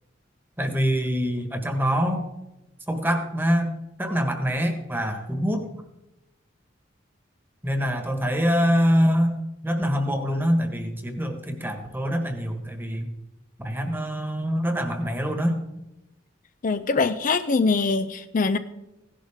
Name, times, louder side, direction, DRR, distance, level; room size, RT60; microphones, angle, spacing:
voice 1, 0.6-2.2 2.9-5.6 7.6-9.4 9.6-13.1 13.6-15.6, equal, 10° right, 6 dB, 1.6 m, -24 dB
voice 2, 16.6-18.6, left 4 dB, 45° left, 9 dB, 0.5 m, -23 dB
16.0 x 11.5 x 3.7 m, 0.93 s
head